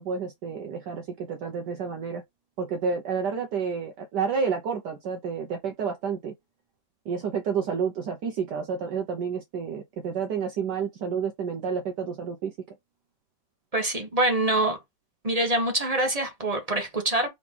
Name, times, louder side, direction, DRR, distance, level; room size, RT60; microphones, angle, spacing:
voice 1, 0.0-2.2 2.6-6.3 7.1-12.5, right 6 dB, 65° right, 1.3 m, -30 dB
voice 2, 13.7-14.8 15.2-17.3, right 1 dB, 25° right, 1.0 m, -25 dB
3.8 x 3.7 x 3.7 m
omnidirectional pair, 2.1 m